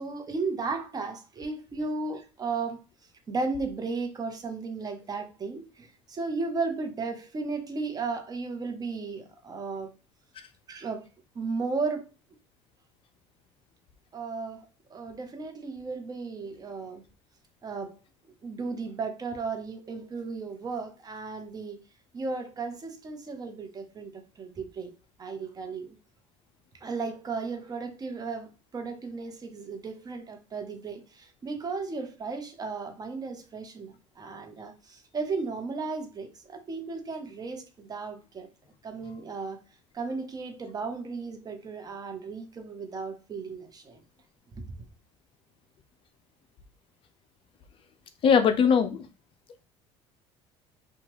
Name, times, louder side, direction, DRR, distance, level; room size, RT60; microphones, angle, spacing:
voice 1, 0.0-2.8 3.3-9.9 10.7-11.1 11.3-12.1 14.1-14.6 14.9-17.0 17.6-18.0 18.4-21.8 22.1-24.9 25.2-26.0 26.8-38.5 38.8-39.6 39.9-44.0, right 4 dB, 30° right, 0.8 m, -35 dB
voice 2, 48.2-49.1, left 6 dB, 40° left, 0.4 m, -21 dB
2.8 x 2.3 x 3.0 m
supercardioid pair, 90°, 13 cm